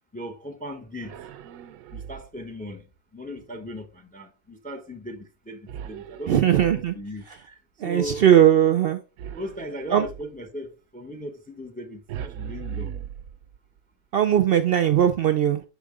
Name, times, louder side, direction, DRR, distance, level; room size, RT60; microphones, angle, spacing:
voice 1, 0.1-1.2 1.9-8.3 9.3-12.9, equal, 10° left, 0.4 m, -38 dB
sound 1, 1.0-2.5 5.7-7.2 9.2-10.4 12.1-13.8, right 8 dB, 90° right, 1.0 m, -38 dB
voice 2, 6.3-6.9 7.8-9.0 9.9-10.1 14.1-15.6, right 10 dB, 65° right, 0.6 m, -19 dB
6.3 x 5.1 x 3.6 m
omnidirectional pair, 1.4 m